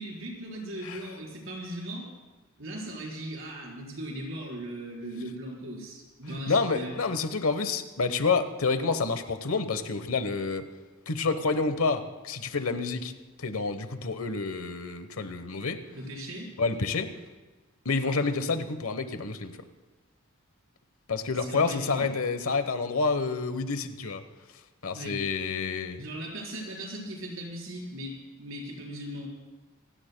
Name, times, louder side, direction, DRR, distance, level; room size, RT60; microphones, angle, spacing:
voice 1, 0.0-2.1 2.6-7.0 15.9-16.5 21.3-22.1 24.9-25.2 26.0-29.3, right 1 dB, 70° right, -2 dB, 4.5 m, -38 dB
voice 2, 6.3-10.7 11.1-13.1 13.4-15.8 16.6-17.1 17.8-19.6 21.1-24.2 24.8-26.0, left 4 dB, 80° left, 10 dB, 1.1 m, -28 dB
27.5 x 16.5 x 2.3 m, 1.2 s
head